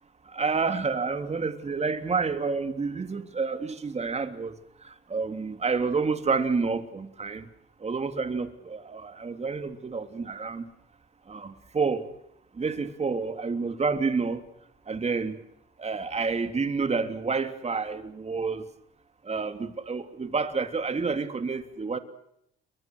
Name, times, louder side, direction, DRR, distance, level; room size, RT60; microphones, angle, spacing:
voice 1, 0.3-4.6 4.8-7.5 7.8-10.7 11.3-12.1 12.6-14.4 14.9-15.4 15.8-18.6 19.2-22.0, right 4 dB, 35° right, 3.3 m, -29 dB
28.5 x 23.0 x 6.4 m
cardioid pair, 90°, 20 cm